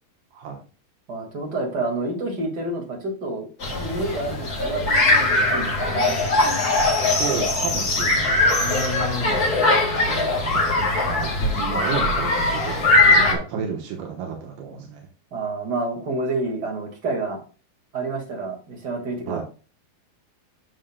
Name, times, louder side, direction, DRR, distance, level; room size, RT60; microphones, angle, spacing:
voice 1, 1.1-3.5 3.7-4.8 5.1-6.2 13.3-13.5 15.3-17.4 17.9-19.4, right 2 dB, 35° right, 1 dB, 1.8 m, -29 dB
sound 1, 3.6-13.3, left 2 dB, 40° left, 1.4 m, -21 dB
voice 2, 7.1-15.1 19.3-19.4, right 4 dB, 80° right, 1 dB, 3.0 m, -32 dB
11.5 x 6.5 x 2.2 m, 0.35 s
omnidirectional pair, 4.3 m